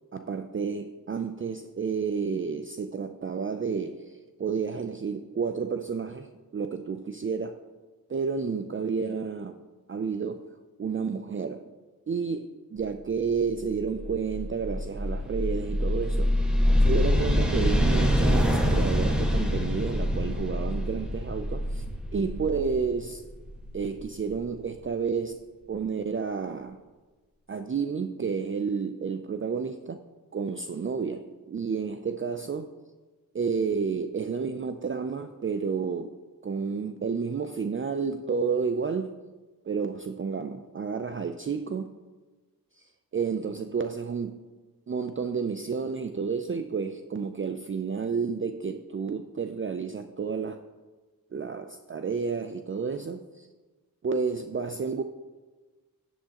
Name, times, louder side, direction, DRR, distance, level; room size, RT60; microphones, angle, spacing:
voice 1, 0.1-7.6 8.1-9.6 9.9-10.4 10.8-11.7 12.1-16.3 16.8-21.8 22.1-23.2 23.7-25.4 25.7-26.8 27.5-30.0 30.3-32.7 33.3-36.1 36.4-39.2 39.6-41.9 42.8-42.9 43.1-44.4 44.9-50.6 51.3-53.5 54.0-55.0, right 5 dB, 35° right, 8 dB, 0.4 m, -31 dB
sound 1, 13.5-24.3, equal, ahead, 1.6 m, -26 dB
11.0 x 8.1 x 2.9 m, 1.2 s
cardioid pair, 50°, 38 cm